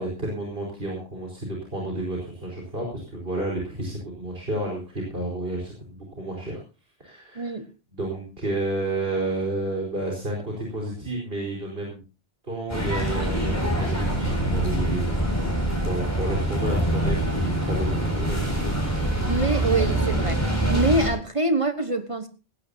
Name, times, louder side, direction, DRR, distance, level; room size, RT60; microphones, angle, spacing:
voice 1, 0.0-6.6 7.0-7.6 7.9-12.0 12.4-15.3 15.8-18.5, right 1 dB, 65° right, -2 dB, 4.9 m, -31 dB
voice 2, 7.3-7.6 18.0-18.1 19.3-20.4 20.7-22.3, right 2 dB, 30° right, 9 dB, 1.2 m, -25 dB
sound 1, 12.7-21.1, right 1 dB, 15° left, 7.5 m, -25 dB
18.0 x 17.0 x 2.7 m, 0.32 s
omnidirectional pair, 1.0 m